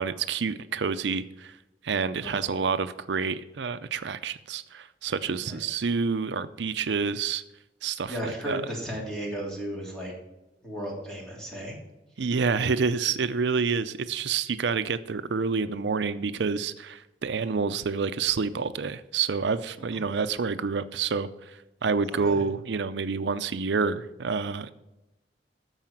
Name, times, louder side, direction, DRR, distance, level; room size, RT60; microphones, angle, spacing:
voice 1, 0.0-1.6 1.8-7.4 7.8-8.6 12.2-24.7, right 5 dB, 85° right, 12 dB, 0.5 m, -28 dB
voice 2, 5.4-5.8 8.1-10.1 10.6-11.8 19.9-20.0 22.1-22.4, equal, 5° left, -3 dB, 3.1 m, -35 dB
13.5 x 4.9 x 7.3 m, 0.98 s
head